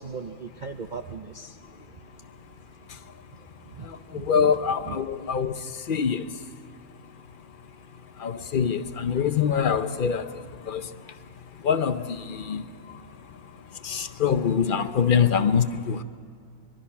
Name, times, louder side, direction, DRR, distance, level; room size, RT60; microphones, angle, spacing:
voice 1, 0.0-1.6 3.7-4.5 4.9-5.0, right 5 dB, 55° right, 0.5 m, -38 dB
voice 2, 4.3-5.5 5.9-6.2 8.2-10.3 10.7-10.8 11.6-12.0 12.5-12.6 13.9-16.0, left 7 dB, 50° left, 0.6 m, -24 dB
24.0 x 22.5 x 5.8 m
omnidirectional pair, 1.6 m